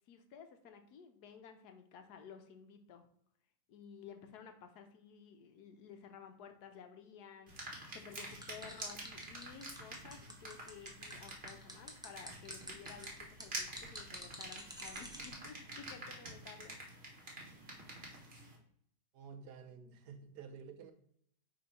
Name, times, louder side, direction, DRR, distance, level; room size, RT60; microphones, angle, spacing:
voice 1, 0.1-3.1 3.7-16.8, left 7 dB, 80° left, 7 dB, 1.3 m, -54 dB
sound 1, 7.5-18.6, right 2 dB, 40° right, 1.6 m, -48 dB
sound 2, 8.4-15.3, equal, 5° right, 0.6 m, -49 dB
voice 2, 19.1-20.9, right 6 dB, 85° right, 7 dB, 1.4 m, -51 dB
4.8 x 3.7 x 5.4 m, 0.65 s
omnidirectional pair, 1.7 m